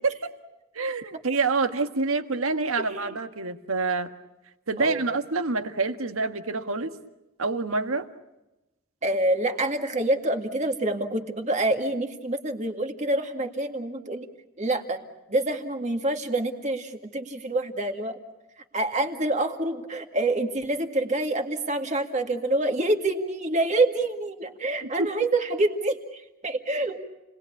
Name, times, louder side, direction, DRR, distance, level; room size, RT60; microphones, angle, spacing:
voice 1, 0.0-0.3 0.7-4.1 4.7-6.9 7.4-8.1 24.8-25.1, right 3 dB, 80° right, 7 dB, 1.6 m, -27 dB
voice 2, 2.8-3.1 4.8-5.1 9.0-14.3 14.6-15.0 15.3-18.2 18.7-27.0, right 2 dB, 35° right, 5 dB, 2.1 m, -27 dB
29.5 x 20.0 x 8.5 m, 1.0 s
head